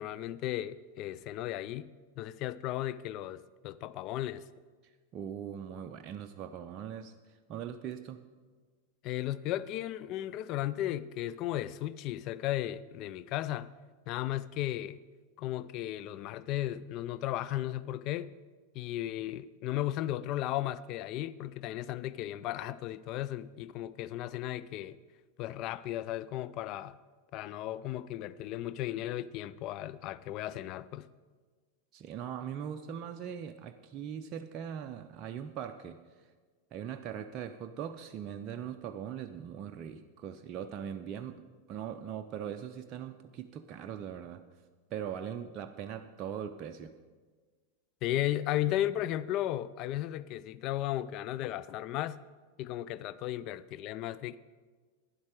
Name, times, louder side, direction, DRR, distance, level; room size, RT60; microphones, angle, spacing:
voice 1, 0.0-4.4 9.0-13.7 14.1-15.0 15.4-18.3 18.7-25.0 25.4-27.0 27.3-31.1 48.0-52.2 52.6-54.4, left 13 dB, 40° left, 0.3 m, -35 dB
voice 2, 5.1-7.1 7.5-8.2 31.9-36.0 36.7-44.4 44.9-46.9, right 8 dB, 35° right, 0.4 m, -40 dB
11.5 x 10.5 x 4.7 m
figure-of-eight pair, 90°, 0 cm